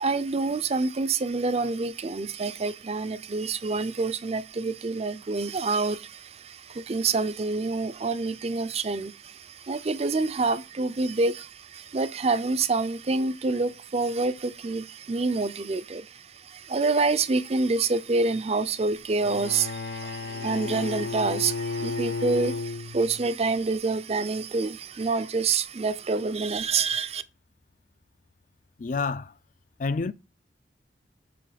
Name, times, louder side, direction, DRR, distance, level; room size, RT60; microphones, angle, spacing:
voice 1, 0.0-27.2, right 3 dB, 35° right, 0.5 m, -27 dB
Bowed string instrument, 19.2-23.3, left 4 dB, 65° left, 0.9 m, -33 dB
voice 2, 28.8-29.3 29.8-30.1, left 4 dB, 45° left, 0.4 m, -28 dB
7.0 x 3.0 x 5.0 m
head